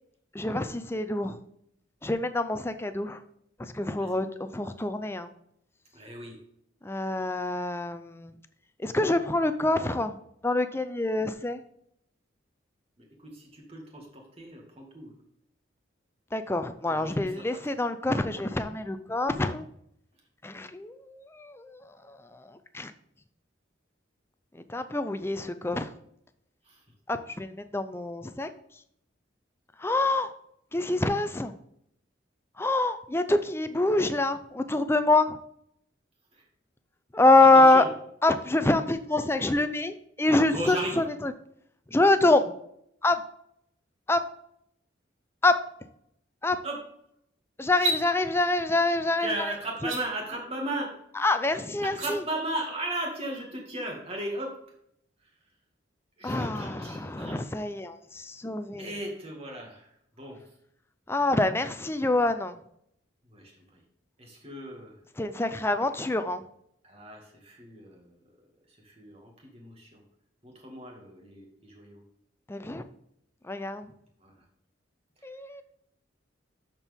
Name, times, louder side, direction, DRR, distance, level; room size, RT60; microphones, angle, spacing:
voice 1, 0.3-1.4 2.0-3.2 3.6-5.3 6.8-8.4 8.8-10.2 10.4-11.6 16.3-19.7 20.4-22.9 24.5-25.9 27.1-28.8 29.8-30.3 30.7-31.5 32.6-35.4 37.1-37.8 38.2-41.3 41.9-42.5 43.0-43.2 44.1-44.3 45.4-45.6 46.4-46.6 47.6-49.5 49.8-49.9 51.2-52.2 56.2-58.9 61.1-62.6 65.2-66.4 72.5-72.8 73.4-73.9 75.2-75.6, left 2 dB, 15° left, 10 dB, 0.5 m, -26 dB
voice 2, 5.9-6.4 13.0-15.2 16.9-17.6 26.6-26.8 36.3-36.4 37.4-37.9 40.5-41.1 46.6-46.8 49.2-51.0 51.8-54.6 55.2-55.3 56.2-57.4 58.8-60.4 63.3-63.8 64.2-65.0 66.8-68.2 68.7-70.0 70.4-72.0 74.2-74.4, right 1 dB, 30° right, 1 dB, 2.1 m, -37 dB
sound 1, 47.7-48.0 49.8-50.0 51.8-52.1, right 2 dB, 90° right, 2.3 m, -29 dB
12.5 x 4.5 x 3.6 m, 0.72 s
head